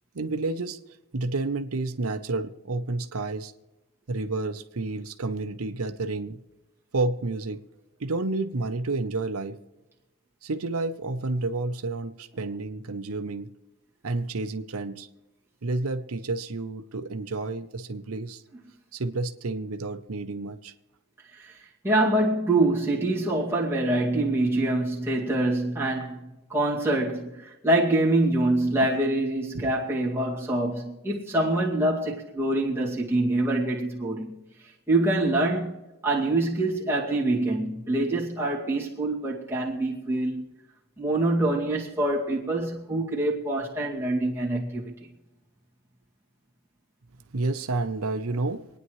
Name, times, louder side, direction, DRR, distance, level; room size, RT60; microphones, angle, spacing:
voice 1, 0.1-0.8 1.1-3.5 4.1-6.4 6.9-7.6 8.0-9.6 10.4-13.5 14.0-15.1 15.6-18.4 18.9-20.7 28.8-28.9 29.5-29.7 47.3-48.6, right 3 dB, 90° right, 0.8 m, -30 dB
voice 2, 21.8-34.3 34.9-40.4 41.0-45.1, right 2 dB, 10° right, 2.2 m, -25 dB
25.5 x 9.7 x 3.2 m
head